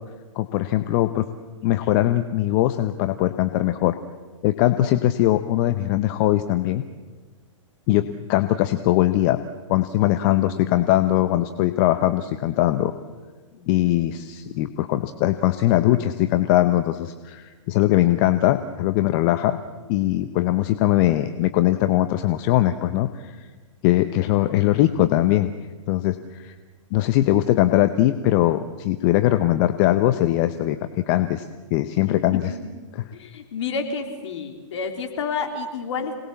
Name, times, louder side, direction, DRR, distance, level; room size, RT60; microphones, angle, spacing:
voice 1, 0.3-1.3 1.6-4.0 4.4-6.8 7.9-9.4 9.7-12.9 13.7-19.6 19.9-23.5 23.8-25.5 25.9-26.5 26.9-30.8 31.1-32.5 32.9-33.1, left 14 dB, 40° left, 10 dB, 1.0 m, -21 dB
voice 2, 10.0-10.7 13.5-13.9 32.0-32.2 33.1-36.1, left 5 dB, 60° left, 5 dB, 3.9 m, -31 dB
26.5 x 19.5 x 7.2 m, 1.3 s
hypercardioid pair, 125°, 17 cm